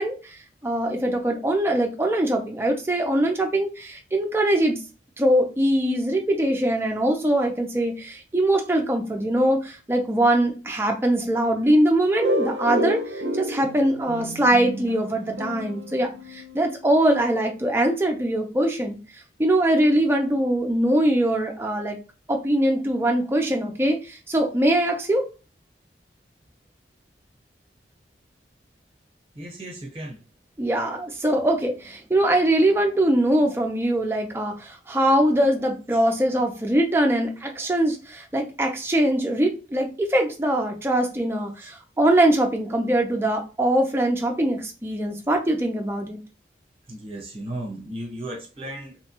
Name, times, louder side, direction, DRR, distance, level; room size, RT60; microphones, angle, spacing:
voice 1, 0.0-4.8 5.2-19.0 19.4-22.0 22.3-25.2 30.6-46.2, right 1 dB, 15° right, 2 dB, 0.4 m, -22 dB
sound 1, 12.2-16.8, right 1 dB, 80° right, 0.5 m, -29 dB
voice 2, 29.3-30.2 46.9-49.0, right 1 dB, 30° right, 0 dB, 0.9 m, -35 dB
2.9 x 2.2 x 2.9 m, 0.34 s
head